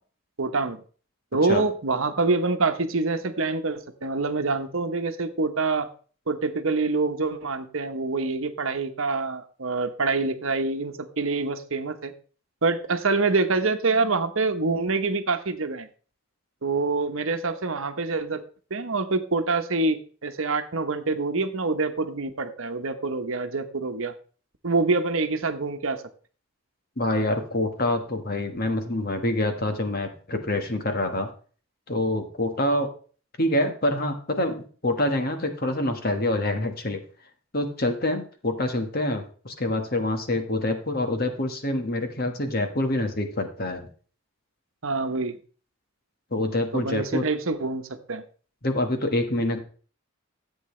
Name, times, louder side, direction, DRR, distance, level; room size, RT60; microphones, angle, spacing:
voice 1, 0.4-0.8 1.3-5.9 6.3-12.1 12.6-15.9 16.6-18.4 18.7-24.1 24.6-26.0 44.8-45.4 46.7-48.2, right 3 dB, 65° right, 8 dB, 1.0 m, -26 dB
voice 2, 27.0-31.3 31.9-32.9 33.4-37.0 37.5-43.9 46.3-47.2 48.6-49.6, left 1 dB, 45° left, 6 dB, 1.5 m, -26 dB
14.0 x 8.1 x 3.2 m, 0.40 s
head